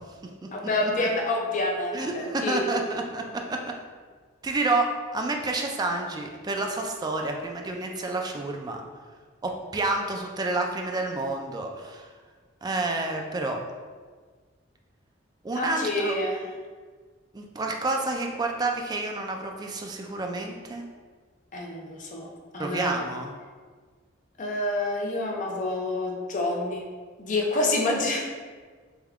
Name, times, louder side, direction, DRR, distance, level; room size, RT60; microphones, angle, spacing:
voice 1, 0.5-2.6 15.5-16.5 21.5-22.9 24.4-26.8 27.2-28.2, left 2 dB, 40° left, 0 dB, 0.5 m, -28 dB
voice 2, 1.9-3.6 4.4-8.8 9.4-12.1 12.6-13.6 15.4-16.2 17.3-20.9 22.6-23.3, right 2 dB, 20° right, 2 dB, 0.3 m, -29 dB
3.5 x 2.2 x 3.4 m, 1.5 s
head